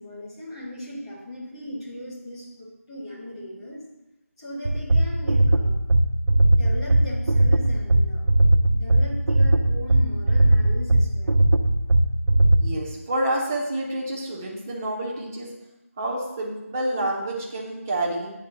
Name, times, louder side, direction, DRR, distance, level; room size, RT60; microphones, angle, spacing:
voice 1, 0.0-3.8 4.4-5.8 6.5-8.2 8.7-11.3, equal, 20° left, -7 dB, 1.7 m, -38 dB
sound 1, 4.7-12.6, right 1 dB, 90° right, 0.8 m, -18 dB
voice 2, 12.6-15.5 16.0-18.3, right 1 dB, 10° right, -4 dB, 0.7 m, -28 dB
9.2 x 3.6 x 6.9 m, 0.97 s
figure-of-eight pair, 175°, 8 cm